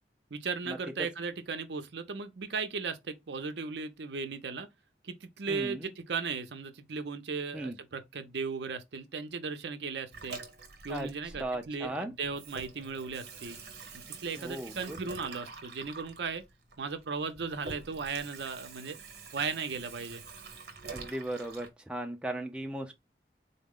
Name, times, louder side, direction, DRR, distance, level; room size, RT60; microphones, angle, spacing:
voice 1, 0.3-4.7 5.0-10.4 10.8-13.6 13.9-16.4 16.8-19.0 19.3-20.2, right 5 dB, 80° right, 0.6 m, -36 dB
voice 2, 5.5-5.9 7.5-7.8 10.9-11.1 11.4-12.1 14.4-15.0 20.9-22.9, right 1 dB, 5° right, 0.4 m, -37 dB
Water tap faucet / Sink (filling or washing), 10.1-11.9 12.2-21.7, right 4 dB, 65° right, 0.9 m, -46 dB
3.9 x 2.1 x 3.6 m
head